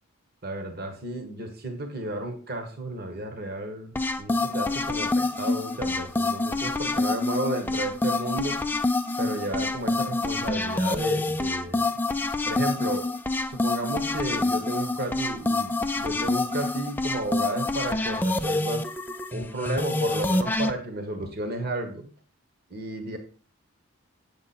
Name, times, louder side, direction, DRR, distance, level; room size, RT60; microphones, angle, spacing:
voice 1, 0.4-8.6 9.2-11.9 12.5-13.1 13.5-18.9 19.3-22.1 22.7-23.2, right 1 dB, 45° right, 5 dB, 1.4 m, -33 dB
sound 1, 3.9-20.7, left 2 dB, 10° left, 0.4 m, -27 dB
8.7 x 7.2 x 4.2 m, 0.39 s
head